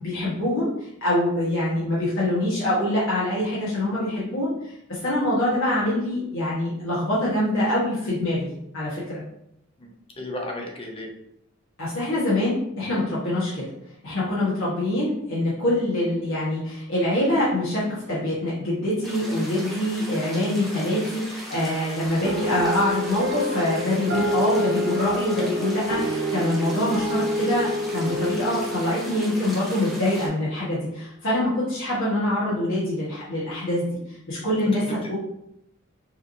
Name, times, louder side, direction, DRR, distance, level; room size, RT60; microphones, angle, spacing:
voice 1, 0.0-8.5 8.7-9.2 11.8-13.6 14.0-35.1, left 1 dB, 70° left, -9 dB, 1.3 m, -25 dB
voice 2, 9.8-11.1 34.9-35.1, left 1 dB, 25° left, 1 dB, 0.7 m, -34 dB
sound 1, 19.0-30.3, equal, ahead, 1.0 m, -38 dB
sound 2, 22.2-30.8, equal, 50° right, 0.7 m, -28 dB
5.6 x 3.1 x 2.7 m, 0.79 s
head